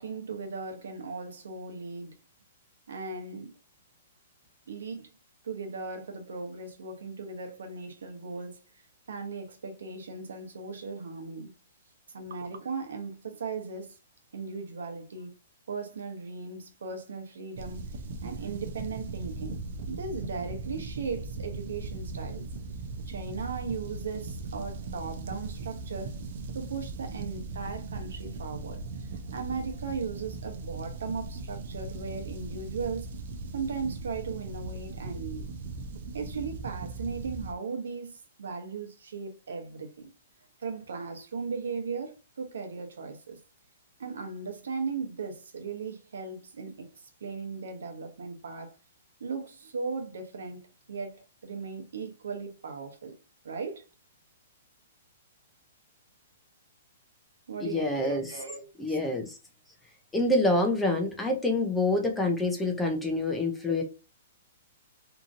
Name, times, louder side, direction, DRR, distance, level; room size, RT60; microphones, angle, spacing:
voice 1, 0.0-2.1 2.9-3.5 4.7-5.1 5.4-8.6 9.1-11.5 12.1-14.0 14.3-15.3 15.7-17.8 18.2-19.6 19.9-22.5 23.1-26.2 26.5-33.1 33.5-35.5 36.1-40.1 40.6-43.4 44.0-46.9 47.2-48.7 49.2-50.6 50.9-53.2 53.4-53.8 57.5-59.0, right 4 dB, 85° right, 0.9 m, -37 dB
sound 1, 17.6-37.5, right 3 dB, 50° right, 0.4 m, -39 dB
voice 2, 57.6-58.3 58.8-59.4 60.1-63.8, left 2 dB, 5° left, 0.5 m, -27 dB
2.9 x 2.6 x 2.5 m
hypercardioid pair, 160°, 0 cm